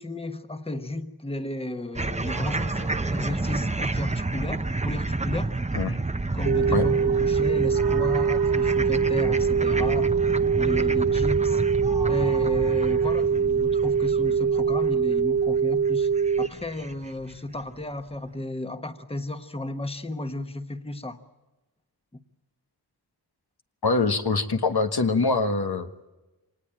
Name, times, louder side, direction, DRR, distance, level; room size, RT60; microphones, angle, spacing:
voice 1, 0.0-5.5 6.3-10.1 10.6-11.6 12.1-16.1 16.4-21.2 22.1-22.2, left 1 dB, 15° left, 8 dB, 1.3 m, -33 dB
sound 1, 2.0-17.3, right 2 dB, 15° right, 0.8 m, -30 dB
sound 2, 2.3-5.1 6.4-10.2 11.9-13.2, right 6 dB, 65° right, 1.1 m, -43 dB
sound 3, 6.5-16.5, right 6 dB, 45° right, 0.8 m, -23 dB
voice 2, 23.8-25.9, left 3 dB, 70° left, 6 dB, 1.6 m, -24 dB
25.5 x 19.5 x 8.9 m, 1.1 s
wide cardioid pair, 80°, 39 cm